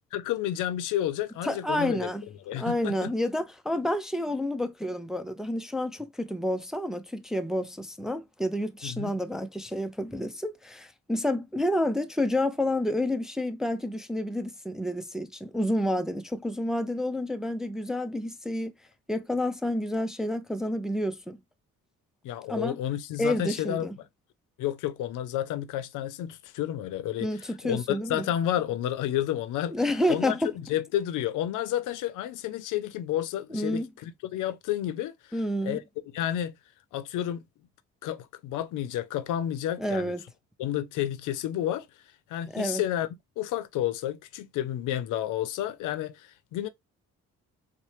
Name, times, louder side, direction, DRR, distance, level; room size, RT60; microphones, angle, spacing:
voice 1, 0.1-2.1 2.5-3.1 8.8-9.1 22.2-23.9 24.6-27.3 27.6-29.7 30.1-35.1 35.6-35.8 36.1-36.5 36.9-37.4 38.0-40.1 40.6-41.9 42.3-43.1 43.4-46.7, left 12 dB, 80° left, 0.6 m, -30 dB
voice 2, 1.4-2.3 2.5-18.7 19.1-21.4 22.5-22.8 23.2-23.9 27.2-28.2 29.7-30.6 33.5-33.9 35.3-35.8 39.8-40.2 42.5-42.8, left 1 dB, ahead, 0.4 m, -29 dB
4.1 x 2.1 x 3.1 m
cardioid pair, 85°, 30 cm